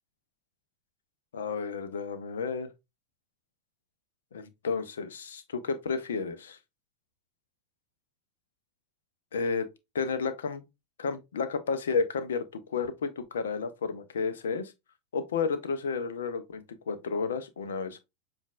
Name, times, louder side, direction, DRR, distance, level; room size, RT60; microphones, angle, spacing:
voice 1, 1.3-2.7 4.3-6.6 9.3-9.7 9.9-10.6 11.0-14.7 15.1-18.0, left 5 dB, 65° left, 0.6 m, -32 dB
7.1 x 2.5 x 2.4 m
figure-of-eight pair, 90°, 0 cm